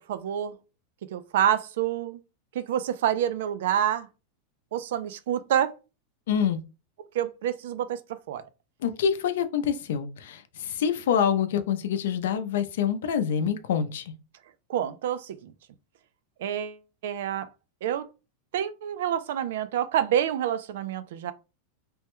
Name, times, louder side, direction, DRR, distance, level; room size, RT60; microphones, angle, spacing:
voice 1, 0.1-0.5 1.1-2.2 2.5-4.1 4.7-5.7 7.1-8.0 8.3-8.4 14.7-15.5 16.4-16.8 17.0-17.5 17.8-18.0 18.5-21.3, right 10 dB, 70° right, 0.4 m, -27 dB
voice 2, 6.3-6.6 8.8-14.1, left 8 dB, 75° left, 0.5 m, -26 dB
3.4 x 2.1 x 2.9 m
supercardioid pair, 170°, 0 cm